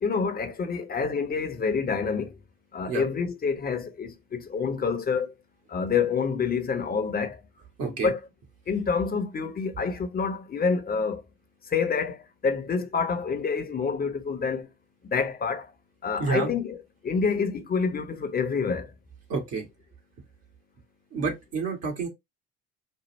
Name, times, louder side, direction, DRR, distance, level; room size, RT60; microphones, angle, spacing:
voice 1, 0.0-2.3 2.7-5.3 5.7-7.4 7.9-8.2 8.7-11.2 11.7-14.7 15.0-15.7 16.0-16.8 17.0-18.9, left 5 dB, 30° left, 1.0 m, -27 dB
voice 2, 7.8-8.1 16.2-16.5 19.3-19.7 21.1-22.1, right 4 dB, 55° right, 1.6 m, -29 dB
5.4 x 2.4 x 3.1 m
hypercardioid pair, 60°, 30 cm